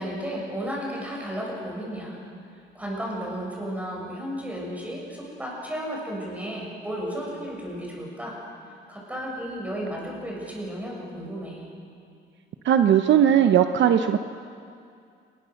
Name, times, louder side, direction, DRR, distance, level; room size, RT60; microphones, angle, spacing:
voice 1, 0.0-2.2 2.7-8.3 8.9-11.6, equal, 5° right, -3 dB, 7.3 m, -33 dB
voice 2, 12.6-14.2, right 9 dB, 65° right, 8 dB, 0.9 m, -18 dB
29.5 x 21.0 x 6.5 m, 2.4 s
cardioid pair, 140°, 21 cm